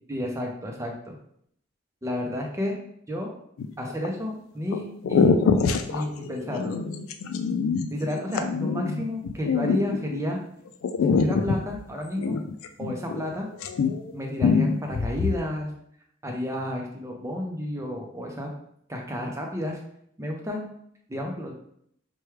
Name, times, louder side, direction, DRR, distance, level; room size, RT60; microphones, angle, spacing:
voice 1, 0.1-1.2 2.0-2.8 3.1-3.3 3.8-5.3 5.9-6.8 7.9-10.4 11.1-12.4 12.8-13.5 14.1-15.7 16.2-18.5 18.9-19.8 20.2-20.7 21.1-21.5, left 1 dB, 15° right, 1 dB, 0.5 m, -31 dB
sound 1, 3.6-4.1 4.7-4.8 5.0-10.3 10.8-13.3 13.5-14.1 14.4-15.4, left 5 dB, 85° left, 0.3 m, -25 dB
4.6 x 2.2 x 3.2 m, 0.69 s
head